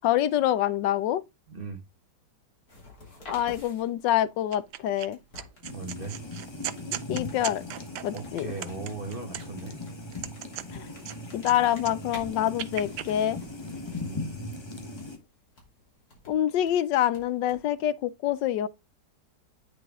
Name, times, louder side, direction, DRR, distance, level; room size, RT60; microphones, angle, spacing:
voice 1, 0.0-1.2 3.3-5.2 6.9-7.6 8.0-8.5 10.7-10.9 11.3-13.4 16.3-18.7, left 12 dB, 85° left, 1.3 m, -26 dB
voice 2, 1.5-1.8 5.7-6.2 8.1-9.8 13.9-14.4, right 3 dB, 30° right, 2.0 m, -38 dB
sound 1, 2.7-17.7, left 2 dB, 55° left, 3.5 m, -52 dB
sound 2, 4.5-5.1 5.4-9.7 10.1-11.5 11.8-13.1, right 12 dB, 75° right, 1.2 m, -38 dB
sound 3, 5.6-15.2, left 2 dB, 20° left, 1.1 m, -39 dB
9.0 x 4.9 x 3.6 m
omnidirectional pair, 1.9 m